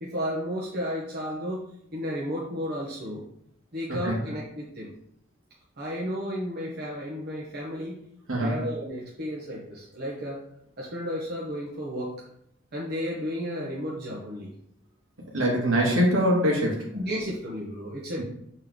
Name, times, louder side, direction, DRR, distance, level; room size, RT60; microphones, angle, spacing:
voice 1, 0.0-1.6 1.9-3.2 3.7-4.9 5.8-8.0 8.4-10.4 10.8-12.1 12.7-14.5 16.9-18.2, equal, 50° right, -5 dB, 1.4 m, -33 dB
voice 2, 3.9-4.2 8.3-8.6 15.3-16.9, equal, 80° right, -2 dB, 2.5 m, -23 dB
7.5 x 4.4 x 3.9 m, 0.72 s
head